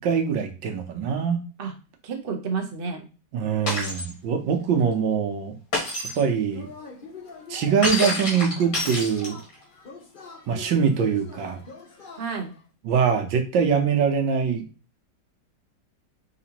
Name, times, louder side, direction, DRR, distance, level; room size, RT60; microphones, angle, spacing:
voice 1, 0.0-1.4 3.3-5.5 6.2-6.7 7.5-9.4 10.5-11.6 12.8-14.6, right 6 dB, 80° right, 4 dB, 1.5 m, -23 dB
voice 2, 2.0-3.0 12.2-12.5, right 5 dB, 60° right, 3 dB, 0.6 m, -30 dB
Shatter, 3.7-4.1 5.7-6.2 7.8-9.5, left 2 dB, 75° left, 2.5 m, -27 dB
Yell / Cheering, 6.5-12.6, left 4 dB, 60° left, 0.5 m, -44 dB
5.0 x 3.7 x 2.8 m, 0.34 s
omnidirectional pair, 2.1 m